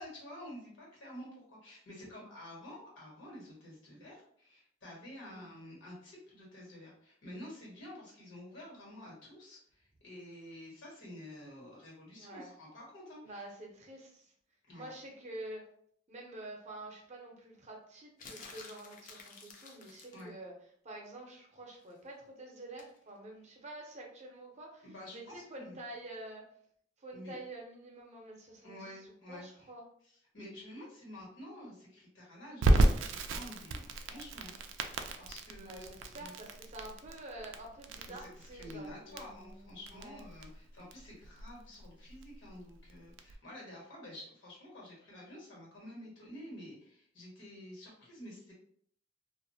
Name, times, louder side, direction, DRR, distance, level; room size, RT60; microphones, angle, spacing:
voice 1, 0.0-13.4 14.7-14.9 20.1-20.4 24.8-25.8 27.1-27.3 28.6-29.7 30.0-34.6 35.2-36.3 38.0-48.5, left 1 dB, 85° left, -5 dB, 1.3 m, -50 dB
voice 2, 12.2-12.5 13.2-14.3 14.7-15.6 16.1-20.5 20.8-26.5 27.0-28.9 29.3-29.8 35.6-40.3, right 1 dB, 40° right, 0 dB, 0.6 m, -48 dB
sound 1, 18.2-20.3 22.8-23.0, left 4 dB, 45° left, 0.4 m, -51 dB
Crackle, 32.6-43.3, right 2 dB, 85° right, 0.3 m, -33 dB
2.4 x 2.0 x 2.7 m, 0.63 s
head